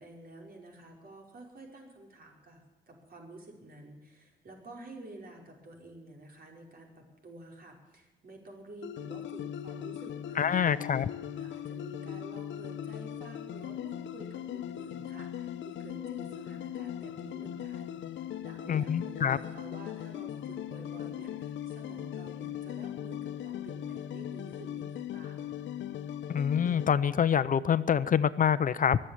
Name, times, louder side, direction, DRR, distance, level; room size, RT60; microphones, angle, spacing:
voice 1, 0.0-10.8 11.4-25.5, right 2 dB, 50° right, 1 dB, 5.2 m, -50 dB
sound 1, 8.8-26.9, left 10 dB, 70° left, 0.9 m, -39 dB
voice 2, 10.4-11.1 18.7-19.4 26.3-29.0, left 8 dB, 45° left, 15 dB, 0.6 m, -26 dB
22.0 x 7.7 x 8.5 m, 1.1 s
cardioid pair, 90°, 20 cm